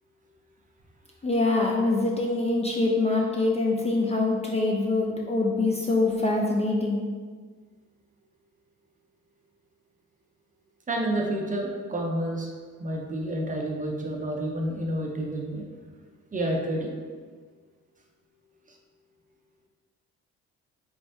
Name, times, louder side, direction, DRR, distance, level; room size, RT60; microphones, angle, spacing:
voice 1, 1.2-7.1, left 2 dB, 20° left, -2 dB, 0.4 m, -24 dB
voice 2, 10.9-12.5 12.8-15.7 16.3-17.0 18.7-18.8, right 1 dB, 25° right, 0 dB, 0.6 m, -29 dB
3.4 x 3.3 x 2.6 m, 1.5 s
cardioid pair, 90°, 30 cm